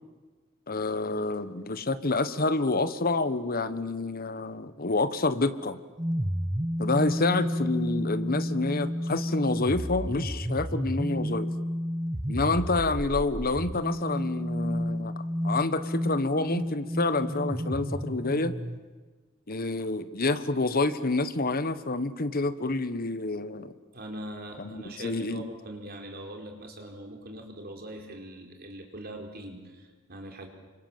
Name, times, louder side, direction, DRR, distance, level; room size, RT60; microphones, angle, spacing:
voice 1, 0.7-5.8 6.8-11.5 12.3-18.6 19.5-23.7 24.6-25.4, left 3 dB, 45° left, 12 dB, 1.3 m, -28 dB
sound 1, 6.0-18.8, equal, 15° right, 1.1 m, -31 dB
voice 2, 23.9-30.5, right 1 dB, 50° right, 3 dB, 4.5 m, -42 dB
29.0 x 25.5 x 7.5 m, 1.3 s
head